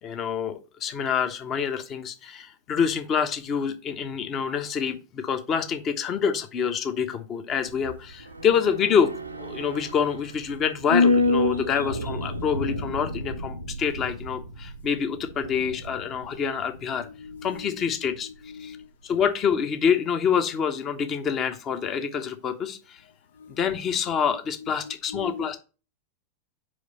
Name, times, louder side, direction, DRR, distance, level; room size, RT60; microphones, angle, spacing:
voice 1, 0.0-9.1 9.4-17.1 17.4-18.3 18.6-18.8 19.0-23.0 23.5-25.6, left 7 dB, 30° left, 1.0 m, -26 dB
sound 1, 7.5-18.0 18.2-18.3, left 2 dB, 85° right, 0.7 m, -29 dB
voice 2, 17.0-18.0 18.2-18.9 23.4-23.5 24.6-25.6, left 6 dB, 65° left, 0.6 m, -41 dB
5.0 x 4.9 x 5.3 m
figure-of-eight pair, 90°, 0 cm